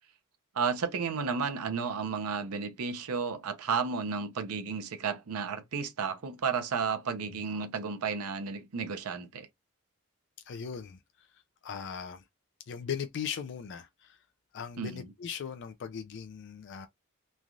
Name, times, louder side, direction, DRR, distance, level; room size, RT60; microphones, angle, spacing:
voice 1, 0.5-9.5 14.8-15.1, right 5 dB, 85° right, 0.6 m, -32 dB
voice 2, 10.4-11.3 11.6-12.2 12.7-14.2 14.5-16.9, left 7 dB, 55° left, 0.4 m, -39 dB
3.2 x 2.3 x 2.4 m
head